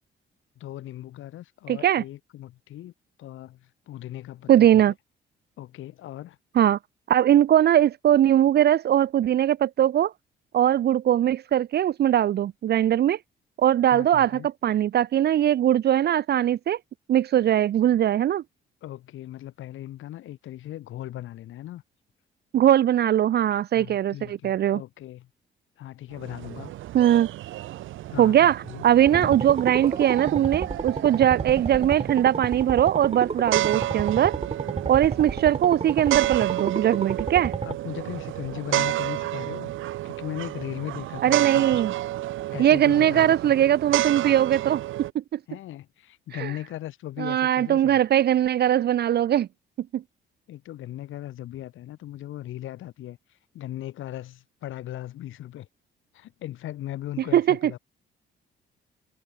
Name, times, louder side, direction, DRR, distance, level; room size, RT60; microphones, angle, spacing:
voice 1, 0.6-2.9 3.2-4.8 5.6-6.4 13.9-14.5 18.8-21.8 23.7-25.3 25.8-26.7 28.1-28.8 29.1-29.4 37.6-41.9 42.5-43.5 45.5-48.0 50.5-55.7 56.1-57.8, left 13 dB, 80° left, 4.3 m, -38 dB
voice 2, 1.7-2.0 4.5-4.9 6.6-6.8 7.1-10.1 10.5-13.2 13.6-16.8 17.1-18.4 22.5-24.8 26.9-27.3 28.2-34.3 34.9-37.5 41.2-41.9 42.6-45.4 46.4-46.5 47.2-49.5 49.9-50.0 57.3-57.6, right 11 dB, 55° right, 0.6 m, -20 dB
sound 1, 26.1-45.1, right 15 dB, 85° right, 2.5 m, -31 dB
sound 2, 29.1-37.7, right 5 dB, 30° right, 2.3 m, -32 dB
cardioid pair, 90°, 20 cm